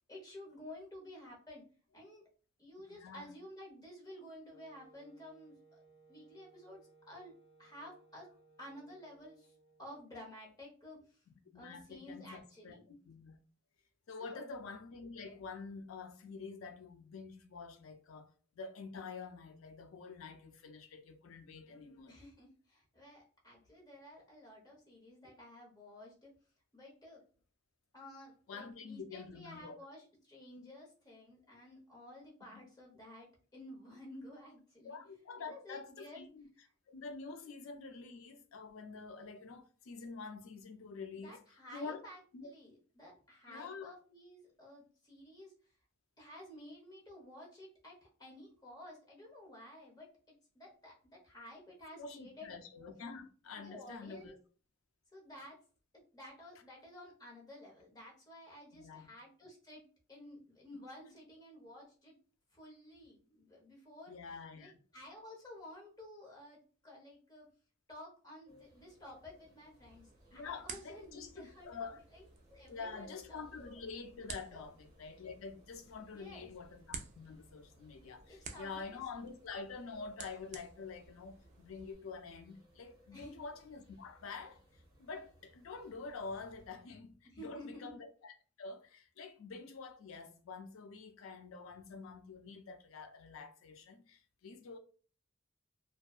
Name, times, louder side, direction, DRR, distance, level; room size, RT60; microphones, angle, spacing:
voice 1, 0.1-1.7 1.9-2.2 2.6-5.8 6.1-7.3 7.6-8.3 8.6-9.5 9.8-11.2 11.5-12.8 14.2-14.4 22.1-26.3 26.7-27.2 27.9-35.0 35.4-36.2 41.2-45.5 46.2-50.1 50.5-52.6 53.5-54.4 55.1-55.6 55.9-59.8 60.1-62.2 62.5-64.1 64.5-67.5 67.9-72.3 72.5-73.4 74.5-74.6 76.1-76.5 78.3-79.0 83.1-83.4 87.2-87.9, left 1 dB, 20° left, 0.8 m, -53 dB
voice 2, 2.9-3.4 11.3-13.4 14.1-22.1 28.5-29.8 32.5-32.6 34.8-36.5 36.9-41.4 41.7-42.0 42.3-42.5 43.5-43.9 51.9-54.4 58.7-59.1 64.1-64.7 70.3-72.0 72.7-84.6 85.0-94.8, left 4 dB, 85° left, 0.4 m, -47 dB
Wind instrument woodwind instrument, 4.5-10.2, right 3 dB, 45° left, 1.2 m, -65 dB
sound 1, 68.5-86.7, equal, 20° right, 1.1 m, -65 dB
sound 2, 69.8-81.9, right 5 dB, 35° right, 0.3 m, -53 dB
2.6 x 2.2 x 2.3 m
head